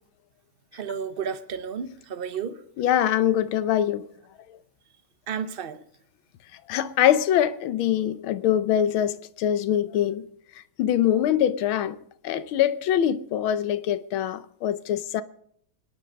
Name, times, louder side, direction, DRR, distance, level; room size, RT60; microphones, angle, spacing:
voice 1, 0.7-2.6 5.3-5.8, right 7 dB, 75° right, 0.5 m, -32 dB
voice 2, 2.8-4.1 6.7-10.3 10.8-12.0 12.2-15.2, left 10 dB, 80° left, 1.6 m, -23 dB
25.5 x 10.0 x 5.2 m
omnidirectional pair, 2.3 m